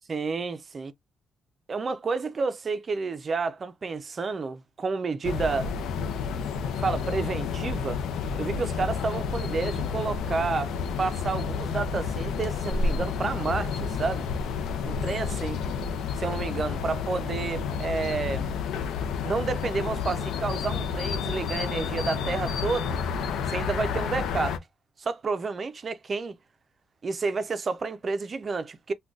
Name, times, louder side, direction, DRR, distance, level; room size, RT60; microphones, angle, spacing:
voice 1, 0.1-0.9 1.7-5.7 6.8-8.0 8.4-14.3 14.8-15.6 16.2-18.5 19.2-23.0 23.5-24.6 25.0-26.4 27.0-28.9, right 4 dB, 30° right, 0.4 m, -30 dB
sound 1, 5.2-24.6, left 5 dB, 75° left, 0.5 m, -30 dB
3.8 x 2.2 x 2.4 m
cardioid pair, 145°, 0 cm